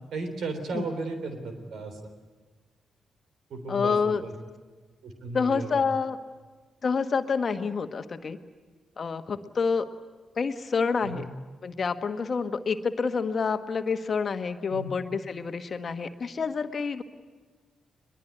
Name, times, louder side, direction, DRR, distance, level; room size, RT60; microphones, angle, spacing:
voice 1, 0.1-2.0 3.5-4.3 5.0-5.8 11.0-11.2 14.7-14.9, right 3 dB, 70° right, 6 dB, 3.6 m, -35 dB
voice 2, 3.7-4.2 5.3-6.2 6.8-8.4 9.0-9.9 10.4-11.3 11.6-17.0, left 5 dB, 50° left, 9 dB, 1.3 m, -28 dB
22.0 x 21.5 x 10.0 m, 1.3 s
hypercardioid pair, 40°, 0 cm